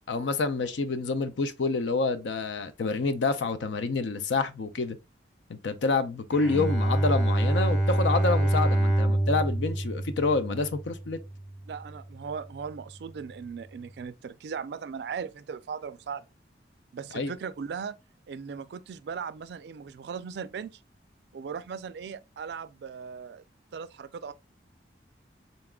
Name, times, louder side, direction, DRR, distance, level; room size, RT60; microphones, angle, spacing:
voice 1, 0.1-5.0 5.5-11.2 17.1-17.3, left 3 dB, 80° left, 0.5 m, -28 dB
Bowed string instrument, 6.3-11.6, right 1 dB, 5° right, 1.0 m, -26 dB
voice 2, 11.7-16.2 16.9-18.0 18.3-20.8 21.3-23.4 23.7-24.3, right 6 dB, 65° right, 0.3 m, -38 dB
4.0 x 3.5 x 2.3 m
head